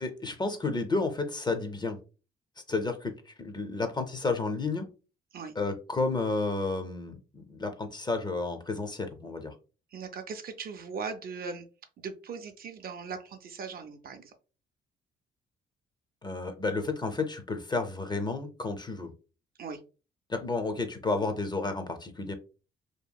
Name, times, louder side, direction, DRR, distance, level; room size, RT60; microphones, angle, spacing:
voice 1, 0.0-2.0 2.7-4.9 5.6-9.5 16.2-19.1 20.3-22.3, left 3 dB, 20° left, 7 dB, 0.5 m, -31 dB
voice 2, 9.9-11.7 12.0-14.3 19.6-19.8, right 5 dB, 50° right, 8 dB, 0.4 m, -39 dB
2.8 x 2.4 x 2.2 m, 0.33 s
cardioid pair, 90°, 20 cm